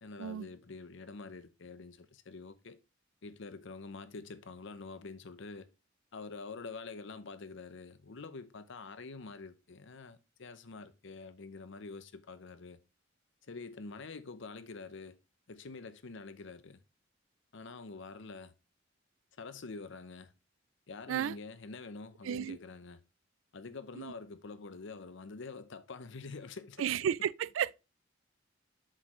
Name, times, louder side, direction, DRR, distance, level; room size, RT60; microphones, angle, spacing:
voice 1, 0.0-2.8 3.2-5.7 6.1-12.8 13.5-15.2 15.5-16.8 17.5-18.5 19.4-20.3 20.9-23.0 23.5-26.9, left 4 dB, 65° left, 0.7 m, -46 dB
voice 2, 22.2-22.6 24.0-24.1 26.8-27.7, right 9 dB, 75° right, 0.3 m, -32 dB
7.7 x 6.4 x 3.1 m
head